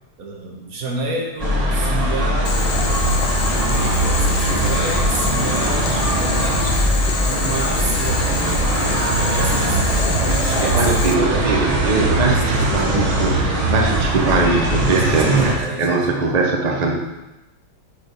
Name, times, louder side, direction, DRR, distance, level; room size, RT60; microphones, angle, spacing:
voice 1, 0.2-3.3 3.6-6.9 7.2-9.0 9.4-11.5 12.2-12.8 14.9-16.1, right 3 dB, 50° right, 0 dB, 1.4 m, -29 dB
sound 1, 1.4-15.6, right 1 dB, 25° right, 0.9 m, -20 dB
Boiling, 2.5-11.1, left 6 dB, 75° left, 1.4 m, -27 dB
voice 2, 10.5-17.0, right 3 dB, 90° right, 1 dB, 0.3 m, -20 dB
6.5 x 4.7 x 5.2 m, 0.98 s
omnidirectional pair, 2.2 m